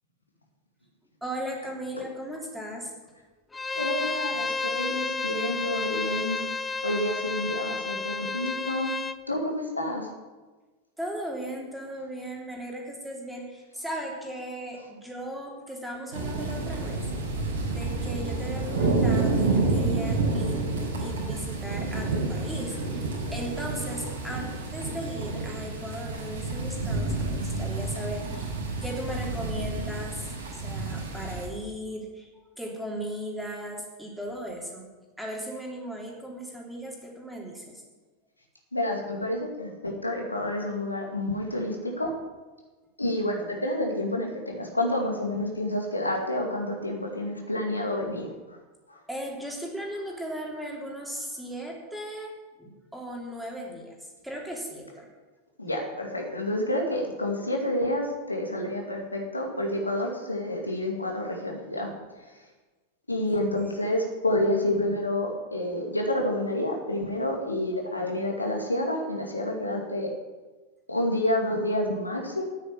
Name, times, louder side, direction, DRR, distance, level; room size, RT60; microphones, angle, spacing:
voice 1, 1.2-2.9 11.0-17.1 17.6-28.5 28.8-32.3 32.6-34.9 35.2-37.8 49.1-52.3 52.6-53.9 54.2-55.1 63.3-63.4 63.8-63.9, right 1 dB, 5° right, -1 dB, 3.1 m, -37 dB
Bowed string instrument, 3.5-9.2, left 4 dB, 10° left, 0.7 m, -31 dB
voice 2, 3.7-6.4 6.8-8.9 9.3-10.1 38.7-42.1 43.0-48.6 48.9-49.0 55.6-61.9 62.2-62.5 63.1-70.1 70.9-72.4, left 1 dB, 85° left, 2 dB, 2.2 m, -29 dB
sound 1, 16.1-31.5, right 3 dB, 65° right, 4.1 m, -29 dB
9.9 x 9.0 x 8.6 m, 1.2 s
figure-of-eight pair, 90°, 0 cm